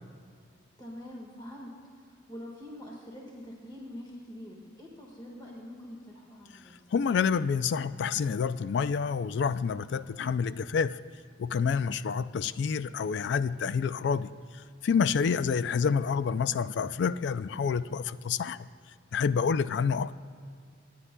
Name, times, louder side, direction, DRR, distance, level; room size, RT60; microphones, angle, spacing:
voice 1, 0.8-6.8 11.8-12.1, left 1 dB, 20° left, -2 dB, 1.6 m, -45 dB
voice 2, 6.9-11.0 11.4-18.7 19.1-20.1, left 6 dB, 65° left, 15 dB, 0.3 m, -28 dB
28.0 x 9.6 x 2.2 m, 2.2 s
head